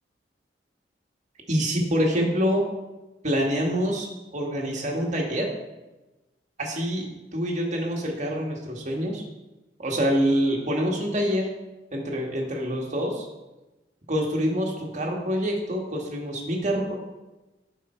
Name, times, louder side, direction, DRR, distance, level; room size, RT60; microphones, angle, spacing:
voice 1, 1.5-2.6 3.2-5.5 6.6-7.1 7.3-9.2 9.8-11.5 11.9-13.3 14.1-16.9, equal, 40° right, -1 dB, 1.8 m, -26 dB
11.5 x 5.2 x 4.5 m, 1.1 s
head